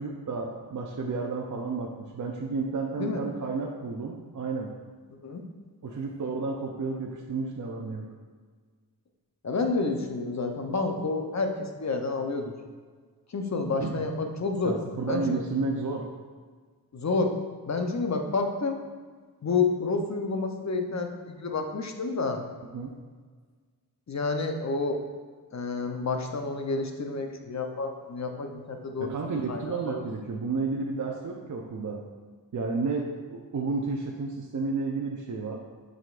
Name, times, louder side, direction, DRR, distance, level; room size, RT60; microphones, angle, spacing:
voice 1, 0.0-4.8 5.8-8.1 13.8-14.0 14.6-16.1 22.6-22.9 29.0-32.0 32.5-35.6, right 4 dB, 50° right, 0 dB, 0.7 m, -31 dB
voice 2, 9.4-12.5 13.3-14.7 15.1-15.4 16.9-17.3 17.7-18.8 19.4-22.4 24.1-25.0 25.5-29.1 29.5-30.0, left 3 dB, 45° left, 4 dB, 0.7 m, -29 dB
7.6 x 5.0 x 2.5 m, 1.5 s
cardioid pair, 65°, 40 cm